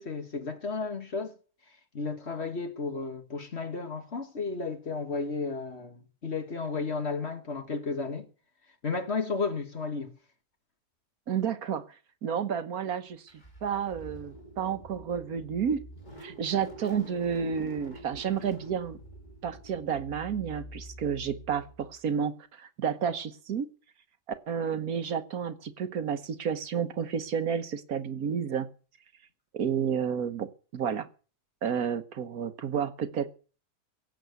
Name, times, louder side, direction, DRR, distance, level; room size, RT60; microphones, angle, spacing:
voice 1, 0.0-1.3 1.9-8.3 8.8-10.1, left 4 dB, 40° left, 1.8 m, -33 dB
voice 2, 11.3-11.8 12.2-13.3 13.6-15.8 16.2-19.0 19.4-23.7 24.5-28.7 29.5-31.1 31.6-33.3, right 7 dB, 65° right, 1.5 m, -31 dB
Car / Engine starting, 13.3-22.0, right 1 dB, 25° left, 3.4 m, -47 dB
17.0 x 7.5 x 8.1 m
omnidirectional pair, 1.7 m